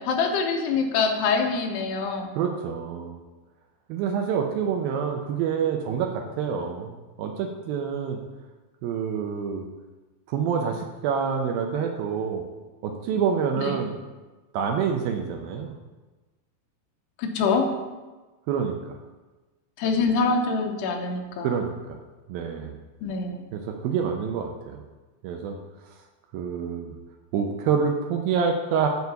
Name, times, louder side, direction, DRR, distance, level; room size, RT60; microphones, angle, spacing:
voice 1, 0.0-2.3 13.6-13.7 17.2-17.7 19.8-21.5 23.0-23.5, left 4 dB, 85° left, 3 dB, 3.0 m, -25 dB
voice 2, 2.4-3.2 3.9-8.2 8.8-9.7 10.3-12.4 12.8-14.0 14.5-15.7 18.5-19.0 21.4-22.0 22.3-22.8 23.5-24.8 25.2-25.6 26.3-26.9 27.3-28.9, right 7 dB, 75° right, 3 dB, 2.3 m, -27 dB
9.3 x 4.8 x 6.7 m, 1.2 s
omnidirectional pair, 4.7 m